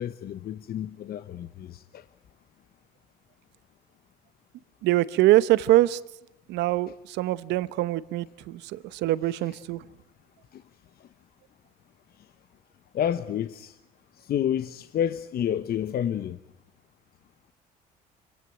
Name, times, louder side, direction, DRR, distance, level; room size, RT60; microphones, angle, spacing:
voice 1, 0.0-2.0 10.5-10.6 12.9-13.8 14.2-16.4, left 10 dB, 55° left, 1.1 m, -29 dB
voice 2, 4.8-6.0 6.5-9.9, right 15 dB, 75° right, 1.0 m, -24 dB
25.5 x 16.5 x 9.1 m
supercardioid pair, 65°, 18 cm